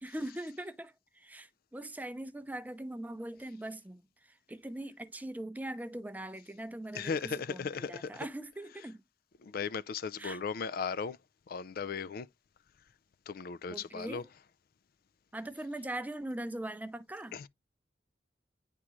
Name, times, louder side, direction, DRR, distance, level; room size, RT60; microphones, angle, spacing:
voice 1, 0.0-4.0 4.3-9.0 10.2-10.4 13.7-14.3 15.3-17.4, right 1 dB, 10° right, 0.5 m, -41 dB
voice 2, 6.9-8.3 9.4-11.2 11.5-12.3 13.3-14.2 17.3-17.5, left 6 dB, 55° left, 0.4 m, -36 dB
9.6 x 3.7 x 3.0 m
head